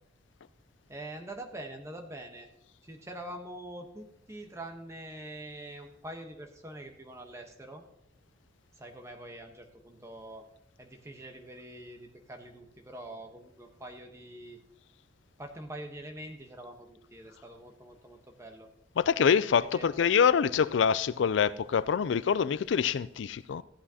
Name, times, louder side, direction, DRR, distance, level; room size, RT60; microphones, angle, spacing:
voice 1, 0.9-2.5 2.8-7.8 8.8-10.4 10.8-14.6 15.4-18.7 19.7-19.9, right 1 dB, 15° right, 1.1 m, -44 dB
voice 2, 19.0-23.6, left 7 dB, 70° left, 0.4 m, -25 dB
14.5 x 8.7 x 2.9 m
head